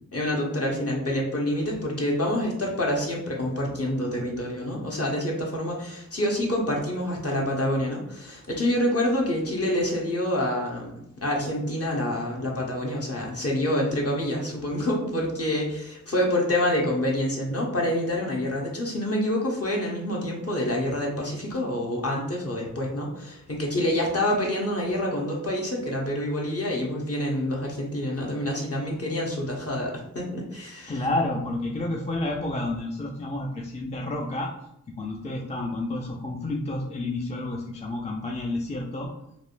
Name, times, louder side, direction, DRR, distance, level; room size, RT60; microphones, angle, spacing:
voice 1, 0.1-31.0, left 1 dB, 45° left, -2 dB, 0.9 m, -27 dB
voice 2, 30.9-34.5 35.0-39.1, left 2 dB, 20° left, -1 dB, 0.4 m, -30 dB
3.4 x 2.2 x 2.5 m, 0.79 s
cardioid pair, 50°, 34 cm